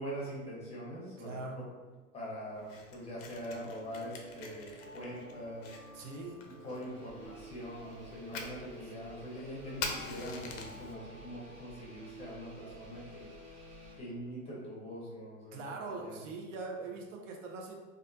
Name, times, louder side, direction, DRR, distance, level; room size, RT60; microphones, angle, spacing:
voice 1, 0.0-1.6 2.1-5.8 6.5-13.3 14.0-15.6 15.9-16.2, equal, 15° left, -5 dB, 0.7 m, -43 dB
voice 2, 1.2-1.7 5.9-6.5 8.8-8.9 15.5-17.7, right 3 dB, 65° right, 2 dB, 0.5 m, -42 dB
Fire, 2.5-10.9, left 4 dB, 50° left, 0.4 m, -46 dB
sound 1, 3.4-14.3, right 1 dB, 20° right, 0.9 m, -53 dB
Engine, 6.7-14.4, right 2 dB, 80° right, 1.0 m, -57 dB
2.3 x 2.1 x 2.5 m, 1.3 s
hypercardioid pair, 95°, 41 cm